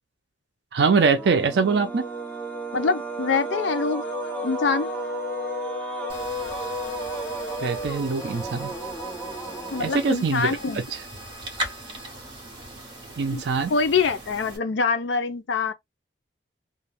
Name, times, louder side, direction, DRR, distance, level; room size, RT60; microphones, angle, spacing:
voice 1, 0.7-2.1 7.6-8.7 9.8-10.6 10.9-11.0 13.2-13.7, right 5 dB, 65° right, 0.4 m, -23 dB
sound 1, 1.1-10.5, right 1 dB, 10° left, 0.6 m, -33 dB
voice 2, 2.7-4.0 4.4-4.9 9.7-10.8 13.3-13.4 13.7-15.7, left 4 dB, 80° left, 0.5 m, -24 dB
sound 2, 6.1-14.6, right 1 dB, 25° right, 0.8 m, -39 dB
2.4 x 2.1 x 3.1 m
head